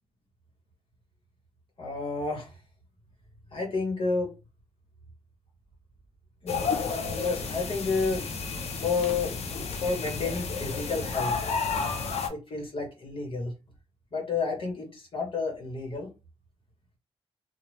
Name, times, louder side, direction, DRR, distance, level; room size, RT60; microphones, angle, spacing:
voice 1, 1.8-2.6 3.5-4.3 6.4-8.3 8.8-11.5 12.3-13.5 14.1-16.1, left 4 dB, 55° left, 1.2 m, -31 dB
sound 1, 6.5-12.3, left 5 dB, 80° left, 0.6 m, -31 dB
2.8 x 2.1 x 3.2 m
cardioid pair, 80°, 11 cm